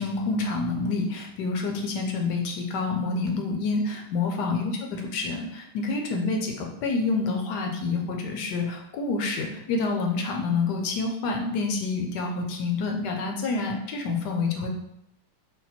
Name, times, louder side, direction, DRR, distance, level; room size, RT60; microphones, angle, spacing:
voice 1, 0.0-14.7, left 3 dB, 80° left, 2 dB, 1.3 m, -28 dB
4.1 x 2.2 x 4.1 m, 0.77 s
omnidirectional pair, 1.8 m